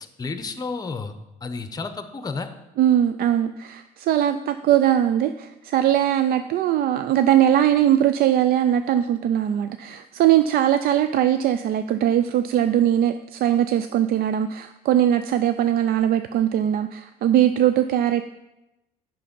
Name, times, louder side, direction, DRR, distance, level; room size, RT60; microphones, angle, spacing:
voice 1, 0.2-1.1 1.4-2.5, left 4 dB, 20° left, 9 dB, 0.7 m, -31 dB
voice 2, 2.8-18.2, right 11 dB, 60° right, 10 dB, 0.4 m, -20 dB
7.6 x 5.8 x 5.2 m, 0.96 s
cardioid pair, 110°, 17 cm